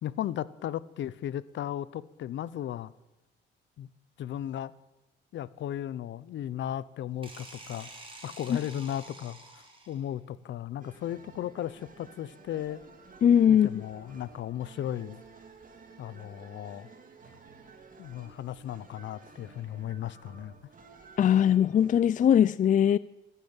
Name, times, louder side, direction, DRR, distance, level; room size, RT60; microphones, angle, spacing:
voice 1, 0.0-2.9 3.8-3.9 4.2-4.7 5.3-7.9 8.2-12.8 13.5-15.2 16.0-16.9 18.0-20.5, left 11 dB, 70° left, 19 dB, 0.7 m, -36 dB
sound 1, 7.2-10.1, right 2 dB, 25° right, 4.7 m, -48 dB
sound 2, 10.8-22.0, right 4 dB, 45° right, 2.9 m, -53 dB
voice 2, 13.2-13.7 21.2-23.0, left 9 dB, 40° left, 18 dB, 0.4 m, -21 dB
14.5 x 10.0 x 8.9 m, 1.0 s
cardioid pair, 90°, 20 cm